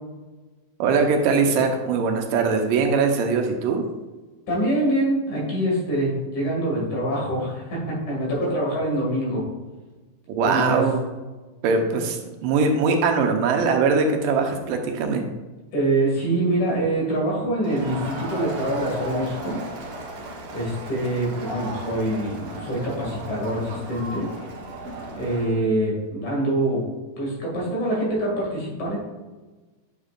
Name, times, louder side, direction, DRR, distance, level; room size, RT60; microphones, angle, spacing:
voice 1, 0.8-3.9 10.4-11.0 11.6-15.2, right 4 dB, 80° right, 4 dB, 2.5 m, -21 dB
voice 2, 4.5-9.4 10.4-10.8 15.7-19.6 20.5-24.3 25.1-26.8 27.2-29.0, right 1 dB, 60° left, -3 dB, 3.7 m, -25 dB
Crowd, 17.6-25.6, right 1 dB, 55° right, 1.7 m, -35 dB
9.0 x 6.6 x 2.5 m, 1.2 s
omnidirectional pair, 3.9 m